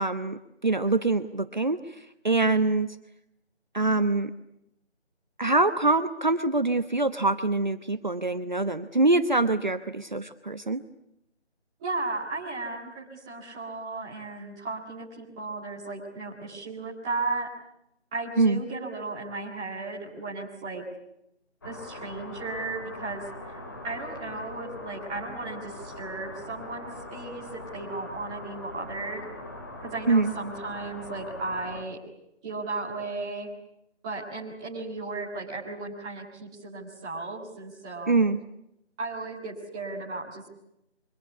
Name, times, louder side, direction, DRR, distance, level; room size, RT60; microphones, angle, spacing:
voice 1, 0.0-2.9 3.7-4.3 5.4-10.8 18.4-18.6 30.1-30.3 38.1-38.4, right 3 dB, 40° right, 11 dB, 1.1 m, -24 dB
voice 2, 11.8-17.5 18.1-20.8 21.6-23.6 23.8-29.2 29.8-32.0 32.4-33.5 34.0-38.2 39.0-40.5, right 3 dB, 5° right, -7 dB, 1.9 m, -35 dB
sound 1, 21.6-31.8, left 2 dB, 20° left, 2.5 m, -42 dB
26.5 x 24.5 x 8.3 m, 0.81 s
figure-of-eight pair, 175°, 34 cm